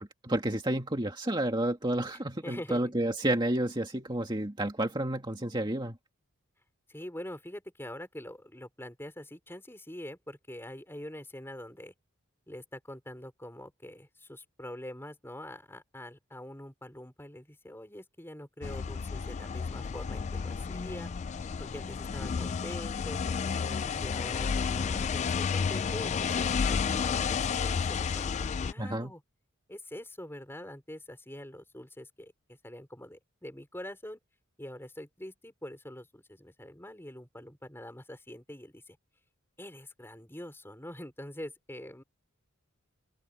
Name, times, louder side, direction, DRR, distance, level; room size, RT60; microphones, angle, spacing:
voice 1, 0.2-6.0 28.8-29.1, right 1 dB, 20° right, 2.1 m, -30 dB
voice 2, 2.4-2.8 6.9-11.9 12.5-21.1 21.6-23.2 23.6-29.2 29.7-34.2 34.6-39.0 39.6-42.0, left 1 dB, 10° left, 4.4 m, -44 dB
sound 1, 18.6-28.7, left 6 dB, 35° left, 0.3 m, -31 dB
open air
head